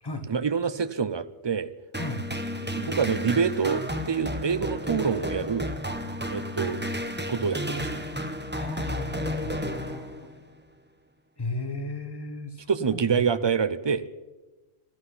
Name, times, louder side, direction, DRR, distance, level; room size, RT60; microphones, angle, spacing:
voice 1, 0.3-1.7 2.6-5.7 6.3-6.8 7.3-8.1 12.7-14.0, right 6 dB, 40° right, 14 dB, 0.4 m, -26 dB
sound 1, 1.9-10.4, equal, 10° right, 1.0 m, -32 dB
voice 2, 8.5-10.2 11.4-13.2, left 2 dB, 20° left, 7 dB, 1.5 m, -36 dB
12.5 x 11.5 x 9.8 m, 1.2 s
omnidirectional pair, 1.2 m